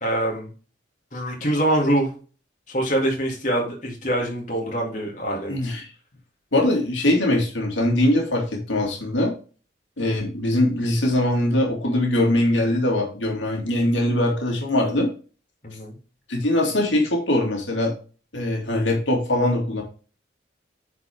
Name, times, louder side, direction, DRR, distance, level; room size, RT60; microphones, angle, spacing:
voice 1, 0.0-0.5 1.1-2.1 2.7-5.5 15.6-16.0, right 1 dB, 40° left, -2 dB, 2.7 m, -24 dB
voice 2, 5.5-5.9 6.5-9.3 10.0-15.1 16.3-17.9 18.3-19.8, left 1 dB, 85° left, 0 dB, 2.3 m, -22 dB
9.2 x 4.5 x 3.5 m, 0.37 s
head